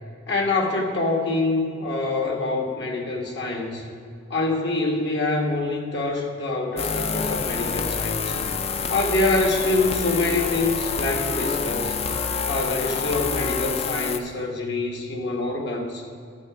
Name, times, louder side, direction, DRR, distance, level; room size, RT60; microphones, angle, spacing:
voice 1, 0.3-3.9 4.3-8.4 8.9-12.0 12.5-16.0, left 2 dB, 65° left, 1 dB, 1.5 m, -25 dB
sound 1, 6.8-14.2, left 5 dB, 35° left, 0.4 m, -27 dB
12.0 x 7.0 x 5.0 m, 2.5 s
head